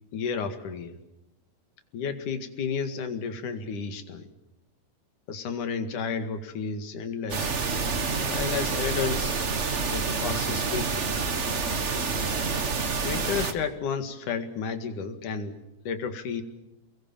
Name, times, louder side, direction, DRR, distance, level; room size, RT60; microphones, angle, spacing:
voice 1, 0.1-1.0 1.9-4.3 5.3-7.5 8.2-9.4 9.9-11.1 13.0-15.6 15.9-16.4, left 6 dB, 70° left, 8 dB, 3.5 m, -32 dB
sound 1, 7.3-13.5, right 4 dB, 55° right, 0.7 m, -28 dB
29.0 x 21.5 x 7.3 m, 0.90 s
omnidirectional pair, 3.7 m